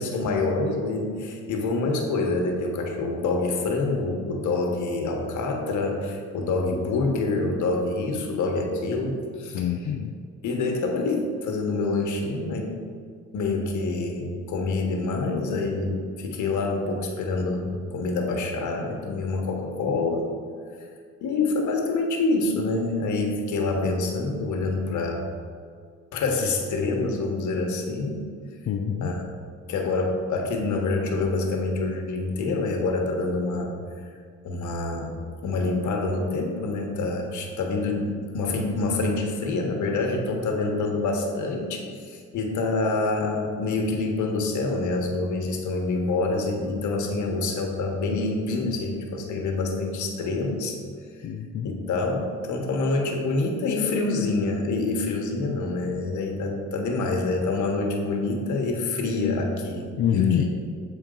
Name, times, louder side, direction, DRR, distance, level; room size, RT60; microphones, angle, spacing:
voice 1, 0.0-9.6 10.4-12.7 13.3-20.3 21.2-25.3 26.1-28.2 29.0-29.2 29.7-33.7 34.4-35.2 35.4-50.8 51.6-59.9 60.1-60.5, left 3 dB, 75° left, 2 dB, 1.1 m, -26 dB
voice 2, 9.5-10.1 28.7-29.1 51.2-51.7 60.0-60.5, left 8 dB, 55° left, 3 dB, 0.5 m, -25 dB
8.1 x 4.4 x 3.8 m, 2.1 s
cardioid pair, 90°, 30 cm